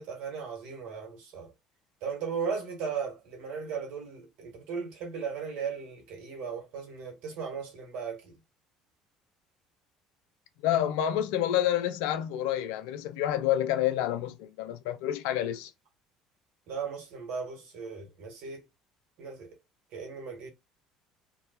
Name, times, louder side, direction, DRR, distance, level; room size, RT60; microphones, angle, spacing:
voice 1, 0.0-1.5 2.0-8.3 16.7-18.7 19.2-19.5 19.9-20.5, right 6 dB, 60° right, 1.2 m, -37 dB
voice 2, 10.6-15.7, left 11 dB, 65° left, 0.3 m, -28 dB
2.7 x 2.2 x 2.6 m
figure-of-eight pair, 60°, 2 cm